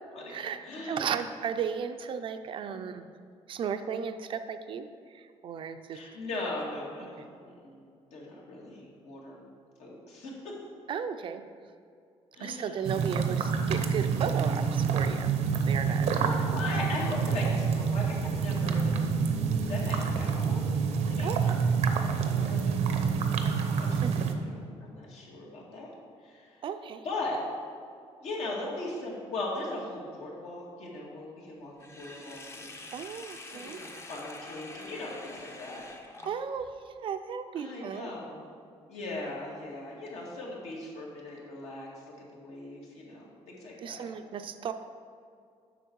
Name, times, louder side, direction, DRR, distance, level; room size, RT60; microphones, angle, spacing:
voice 1, 0.1-1.1 2.7-2.9 5.9-9.4 9.8-10.6 12.3-12.8 16.2-19.2 19.7-20.8 21.0-21.4 22.2-23.3 23.8-25.9 26.2-26.6 27.0-27.4 28.2-32.7 33.5-35.8 36.2-36.3 37.6-38.5 38.9-41.9 42.3-44.1, left 2 dB, 70° left, -3 dB, 2.1 m, -39 dB
voice 2, 0.8-3.1 3.5-6.0 10.9-11.4 12.4-15.3 15.6-16.4 16.7-16.8 21.2-21.6 24.0-24.2 26.6-27.0 32.9-33.8 36.2-38.1 43.8-44.7, right 7 dB, 50° right, 9 dB, 0.5 m, -35 dB
sound 1, 12.9-24.3, right 6 dB, 80° right, 0.7 m, -27 dB
Sink (filling or washing), 31.8-36.7, left 2 dB, 25° left, 0.7 m, -46 dB
8.0 x 6.1 x 4.6 m, 2.3 s
cardioid pair, 135°, 11 cm